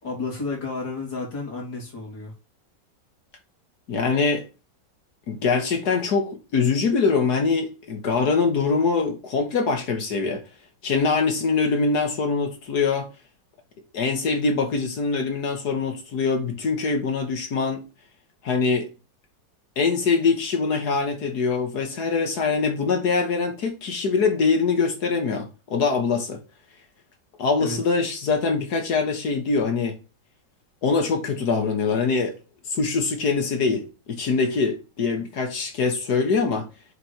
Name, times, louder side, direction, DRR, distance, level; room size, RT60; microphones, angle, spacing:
voice 1, 0.0-2.3 27.6-27.8, left 3 dB, 85° left, 3.7 m, -31 dB
voice 2, 3.9-4.5 5.3-10.4 10.8-13.1 13.9-17.8 18.4-18.9 19.8-26.4 27.4-30.0 30.8-32.3 32.7-36.7, left 4 dB, 60° left, 1.8 m, -23 dB
7.7 x 3.4 x 4.3 m
omnidirectional pair, 1.9 m